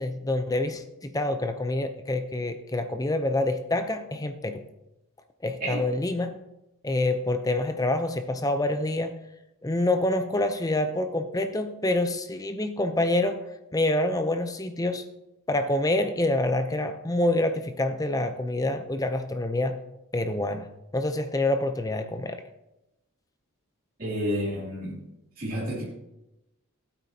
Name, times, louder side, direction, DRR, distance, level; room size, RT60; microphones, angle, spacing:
voice 1, 0.0-4.7 5.4-6.4 6.8-9.2 9.6-13.4 13.7-15.1 15.5-19.8 20.1-22.4, left 1 dB, 15° left, 8 dB, 0.6 m, -27 dB
voice 2, 24.0-25.0 25.4-25.8, equal, 40° right, -6 dB, 2.7 m, -30 dB
15.5 x 8.7 x 2.8 m, 0.92 s
head